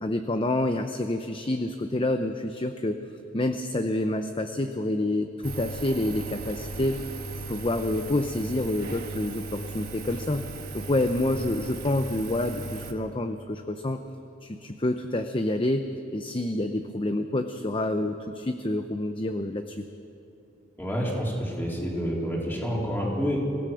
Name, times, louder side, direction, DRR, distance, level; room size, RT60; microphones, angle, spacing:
voice 1, 0.0-3.0 3.3-7.0 7.5-10.5 10.7-14.0 14.4-19.9, left 1 dB, 30° left, 7 dB, 0.7 m, -28 dB
Engine, 5.4-12.9, right 3 dB, 55° right, 1.7 m, -37 dB
voice 2, 20.8-23.4, equal, 10° left, -4 dB, 4.0 m, -28 dB
25.5 x 17.0 x 6.3 m, 2.9 s
head